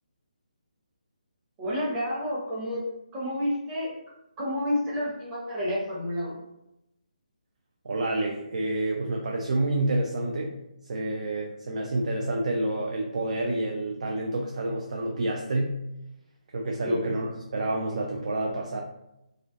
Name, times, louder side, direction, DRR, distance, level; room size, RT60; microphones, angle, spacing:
voice 1, 1.6-2.8 3.1-3.9 4.4-6.4 16.8-17.0, left 1 dB, 15° right, -7 dB, 0.7 m, -29 dB
voice 2, 7.8-10.5 10.9-15.7 16.5-18.8, right 2 dB, 55° right, 0 dB, 0.3 m, -28 dB
2.4 x 2.1 x 2.4 m, 0.88 s
figure-of-eight pair, 145°, 4 cm